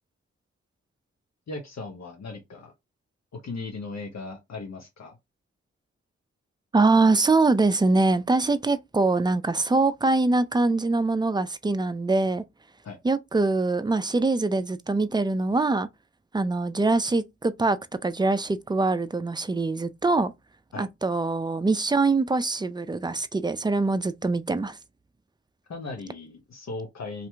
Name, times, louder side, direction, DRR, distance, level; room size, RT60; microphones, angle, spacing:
voice 1, 1.5-2.7 3.3-5.2 12.8-13.0 20.7-20.9 25.7-27.3, left 3 dB, 60° left, 0.9 m, -37 dB
voice 2, 6.7-12.4 13.0-15.9 16.3-17.8 18.0-20.3 20.8-24.8, right 3 dB, 15° right, 0.5 m, -23 dB
2.7 x 2.5 x 3.3 m
supercardioid pair, 40°, 31 cm